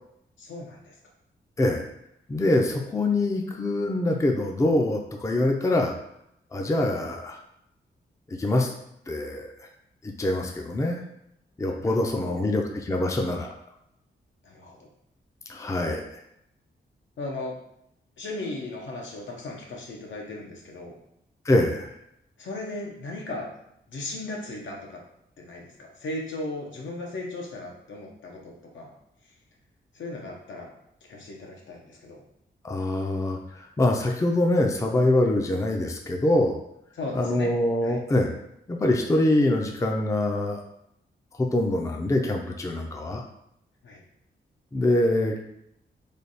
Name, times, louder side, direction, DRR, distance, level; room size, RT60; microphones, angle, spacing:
voice 1, 0.4-0.9 11.7-12.5 14.4-14.9 17.2-17.6 18.2-20.9 22.4-23.5 23.9-25.0 25.4-28.9 29.9-30.7 31.1-32.2 36.9-37.5 37.8-38.0 43.8-44.0, left 2 dB, 80° left, -1 dB, 0.9 m, -37 dB
voice 2, 2.3-5.9 6.5-7.4 8.3-8.7 9.1-9.5 10.0-11.0 11.6-13.5 15.5-16.0 21.5-21.9 32.6-36.6 37.1-38.3 38.7-40.6 41.4-43.2 44.7-45.4, left 1 dB, 15° left, 2 dB, 0.4 m, -24 dB
3.4 x 2.3 x 4.0 m, 0.77 s
cardioid pair, 95°, 19 cm